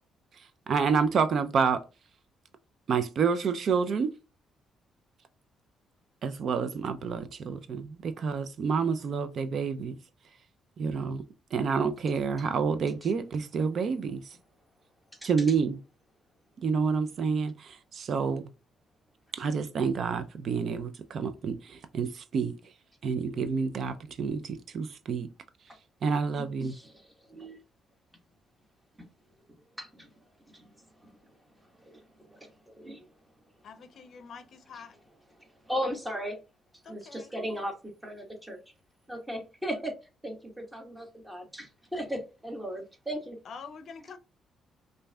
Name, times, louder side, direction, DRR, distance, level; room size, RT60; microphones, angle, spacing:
voice 1, 0.7-1.8 2.9-4.1 6.2-10.0 10.8-11.2 11.5-14.2 15.2-15.8 16.6-18.5 19.3-22.5 23.0-25.3 26.0-26.7, right 5 dB, 60° right, 0.4 m, -28 dB
voice 2, 26.4-27.6 29.0-29.1 29.5-30.1 30.5-33.1 34.7-34.8 35.3-36.4 36.8-38.6 39.1-40.0 40.2-43.4, equal, 10° right, 1.3 m, -38 dB
voice 3, 33.6-35.0 36.8-37.3 43.4-44.2, left 5 dB, 60° left, 0.5 m, -46 dB
5.2 x 2.6 x 2.2 m
cardioid pair, 90°, 0 cm